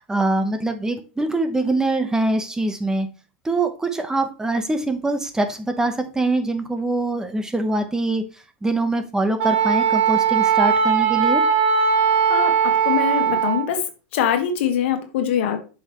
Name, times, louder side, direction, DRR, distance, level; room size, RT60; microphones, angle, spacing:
voice 1, 0.0-3.1 3.4-8.2 8.6-11.4, right 2 dB, 10° right, 8 dB, 1.1 m, -23 dB
Wind instrument woodwind instrument, 9.4-13.7, right 7 dB, 70° right, 2.3 m, -19 dB
voice 2, 12.3-13.8 14.1-15.6, left 9 dB, 70° left, 7 dB, 1.6 m, -23 dB
7.4 x 5.7 x 3.2 m, 0.34 s
hypercardioid pair, 115°, 6 cm